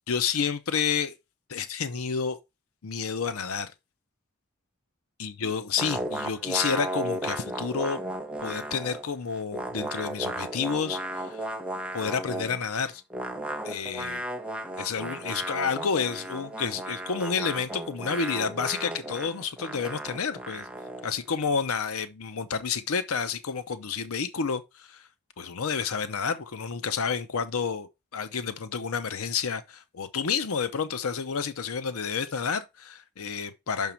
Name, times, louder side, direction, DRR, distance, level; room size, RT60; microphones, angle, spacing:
voice 1, 0.1-1.1 1.5-2.4 2.8-3.7 5.2-8.0 8.4-11.4 11.9-13.0 13.6-14.2 14.8-20.7 21.0-25.1 25.4-33.9, left 6 dB, 80° left, 0.6 m, -30 dB
sound 1, 5.8-9.1 9.3-12.6 13.1-21.1, right 1 dB, 5° right, 0.7 m, -35 dB
6.0 x 5.4 x 4.3 m
head